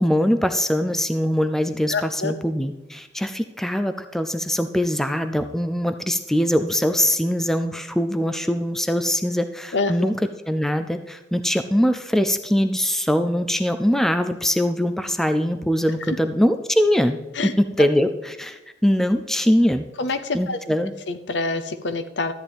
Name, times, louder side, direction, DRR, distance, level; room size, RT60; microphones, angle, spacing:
voice 1, 0.0-10.1 10.5-17.2 17.8-19.8 20.3-20.9, equal, ahead, 8 dB, 0.3 m, -22 dB
voice 2, 1.9-2.3 9.7-10.1 16.1-16.2 17.3-17.5 20.0-20.6 21.1-22.3, left 3 dB, 75° left, 10 dB, 0.7 m, -26 dB
13.5 x 9.1 x 3.4 m, 1.1 s
head